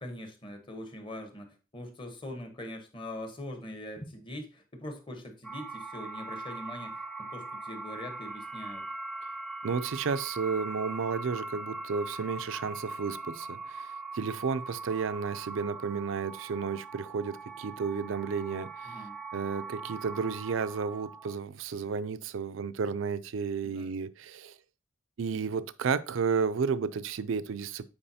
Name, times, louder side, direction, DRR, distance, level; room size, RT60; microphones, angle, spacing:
voice 1, 0.0-8.9 18.8-19.2 23.6-23.9, left 1 dB, 25° left, 1.0 m, -42 dB
sound 1, 5.4-21.4, right 3 dB, ahead, 0.4 m, -41 dB
voice 2, 9.6-19.0 19.3-24.6 25.2-27.8, right 5 dB, 75° right, 0.4 m, -32 dB
8.6 x 4.8 x 2.7 m
head